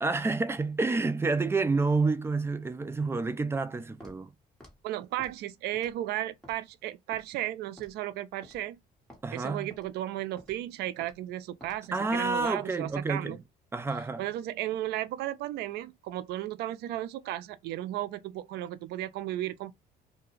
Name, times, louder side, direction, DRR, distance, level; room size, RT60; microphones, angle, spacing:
voice 1, 0.0-4.3 9.2-9.7 11.9-13.4 13.7-14.2, right 3 dB, 15° right, 0.4 m, -29 dB
Walk footsteps, 4.0-4.2 4.6-4.8 5.2-5.4 5.7-6.0 6.4-6.6 7.1-7.3 7.8-8.0 8.4-8.6 9.1-9.2 9.7-9.9 10.4-10.6 11.0-11.2 11.6-11.8 12.3-12.5 12.8-13.0, left 1 dB, 5° left, 1.3 m, -52 dB
voice 2, 4.8-8.8 9.3-13.4 14.2-19.7, right 14 dB, 75° right, 0.4 m, -34 dB
2.3 x 2.2 x 3.0 m
cardioid pair, 110°, 17 cm